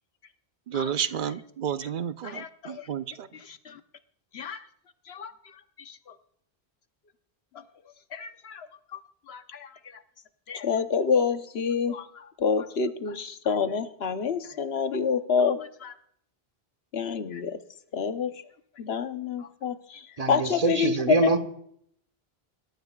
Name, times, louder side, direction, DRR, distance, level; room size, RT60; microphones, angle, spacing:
voice 1, 0.7-3.3, right 8 dB, 55° right, 12 dB, 0.8 m, -31 dB
voice 2, 2.2-2.9 3.6-3.8 4.3-4.6 5.1-5.3 5.9-6.0 8.1-8.7 8.9-9.0 9.3-9.7 10.5-15.9 16.9-17.5 17.9-18.3 18.8-20.9 21.2-21.4, left 6 dB, 80° left, 9 dB, 1.2 m, -28 dB
voice 3, 20.2-21.4, right 4 dB, 40° right, 7 dB, 1.3 m, -25 dB
25.5 x 13.5 x 2.4 m, 0.68 s
omnidirectional pair, 1.0 m